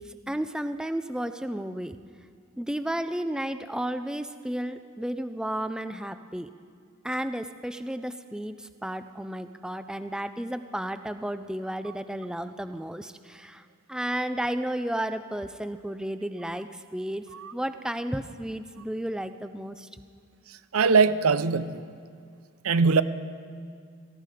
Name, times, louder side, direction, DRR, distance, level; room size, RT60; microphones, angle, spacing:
voice 1, 0.0-2.0 2.6-6.5 7.0-19.9, right 1 dB, 5° right, 10 dB, 0.4 m, -33 dB
voice 2, 20.7-21.8 22.6-23.0, right 4 dB, 80° right, 13 dB, 0.6 m, -21 dB
17.5 x 15.0 x 4.9 m, 2.2 s
head